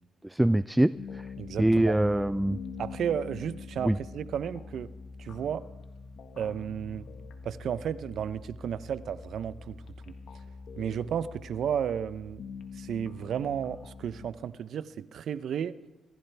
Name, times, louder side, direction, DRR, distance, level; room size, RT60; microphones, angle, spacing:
voice 1, 0.2-1.3 1.6-2.6 3.8-4.0, right 1 dB, 10° right, 16 dB, 0.4 m, -24 dB
sound 1, 1.0-14.3, left 5 dB, 70° left, 1.6 m, -44 dB
voice 2, 1.4-2.0 2.8-4.9 5.2-5.6 6.4-7.1 7.4-9.8 10.8-12.4 12.7-15.7, right 8 dB, 70° right, 15 dB, 0.7 m, -33 dB
25.0 x 15.5 x 3.4 m, 1.0 s
supercardioid pair, 55°, 0 cm